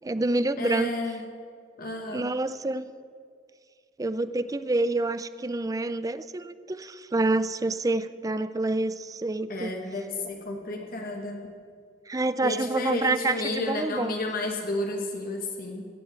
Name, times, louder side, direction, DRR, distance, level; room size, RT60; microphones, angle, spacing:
voice 1, 0.0-0.9 2.1-2.9 4.0-9.8 12.1-14.1, right 2 dB, 20° right, 14 dB, 0.4 m, -27 dB
voice 2, 0.6-1.2 1.8-2.3 9.5-11.4 12.4-15.8, left 2 dB, 50° left, 2 dB, 1.6 m, -31 dB
16.0 x 8.2 x 8.1 m, 2.1 s
head